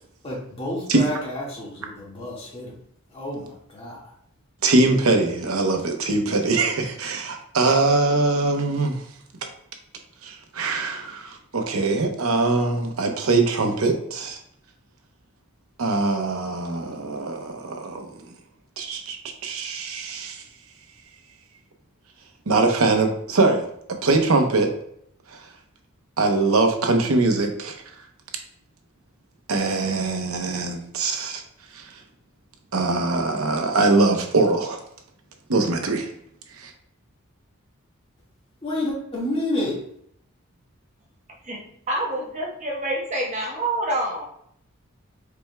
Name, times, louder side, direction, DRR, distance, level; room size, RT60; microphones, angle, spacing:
voice 1, 0.2-2.8 3.1-4.1 38.6-39.8, left 1 dB, 25° left, -5 dB, 1.7 m, -30 dB
voice 2, 4.6-9.0 10.2-14.4 15.8-18.1 18.8-19.2 19.4-20.4 22.5-23.7 24.0-24.7 25.3-25.5 26.2-27.8 29.5-31.4 31.7-31.9 32.7-34.8 35.5-36.1 36.6-36.7, right 3 dB, 80° right, 4 dB, 0.8 m, -22 dB
voice 3, 41.4-44.3, right 1 dB, 35° right, -2 dB, 1.0 m, -27 dB
5.1 x 4.5 x 2.2 m, 0.68 s
head